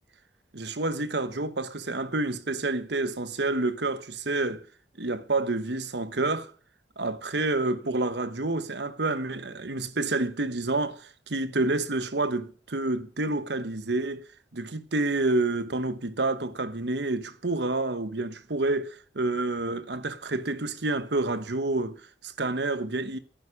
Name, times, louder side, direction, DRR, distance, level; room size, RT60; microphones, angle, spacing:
voice 1, 0.5-4.6 5.0-6.5 7.0-14.3 14.5-23.2, right 2 dB, 70° right, 1.2 m, -28 dB
11.0 x 9.7 x 9.8 m
head